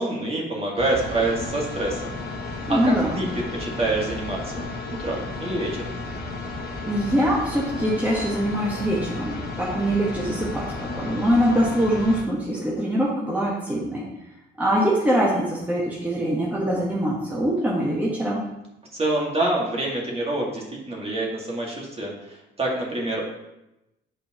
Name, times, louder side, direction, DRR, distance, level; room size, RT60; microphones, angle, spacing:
voice 1, 0.0-2.0 2.7-5.9 18.9-23.3, right 2 dB, 30° right, -2 dB, 2.0 m, -27 dB
sound 1, 0.8-12.2, left 3 dB, 50° left, 1.4 m, -33 dB
voice 2, 2.7-3.2 6.9-14.1 14.6-18.4, equal, 10° right, -5 dB, 1.4 m, -23 dB
8.6 x 5.1 x 3.0 m, 0.91 s
cardioid pair, 90°, 20 cm